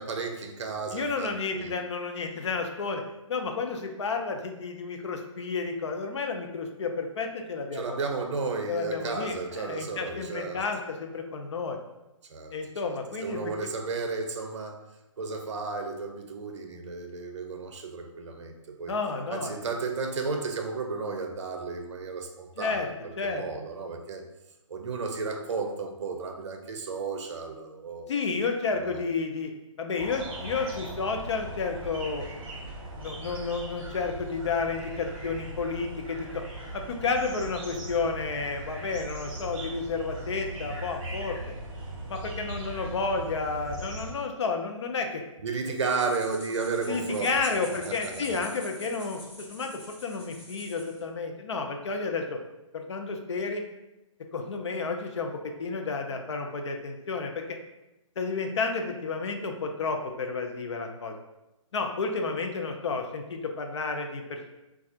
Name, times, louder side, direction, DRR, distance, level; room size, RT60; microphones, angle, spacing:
voice 1, 0.0-1.8 7.7-10.6 12.3-12.6 12.8-12.9 13.2-14.8 15.2-18.9 19.3-24.2 24.7-28.1 28.8-29.0 45.4-47.4 47.8-48.4, right 4 dB, 60° right, 4 dB, 0.6 m, -33 dB
voice 2, 0.9-3.0 3.3-8.0 8.7-11.8 12.5-13.7 18.9-19.6 22.6-22.9 23.2-23.5 28.1-29.5 29.8-32.2 33.0-36.4 36.7-41.4 42.1-45.2 46.9-52.4 52.7-53.6 54.3-57.6 58.2-61.2 61.7-64.5, left 4 dB, 60° left, 4 dB, 0.5 m, -31 dB
sound 1, 30.0-44.1, right 1 dB, 10° right, 0.5 m, -39 dB
sound 2, 45.8-51.0, left 1 dB, 30° left, 1.0 m, -46 dB
4.2 x 2.3 x 2.4 m, 0.96 s
hypercardioid pair, 150°, 17 cm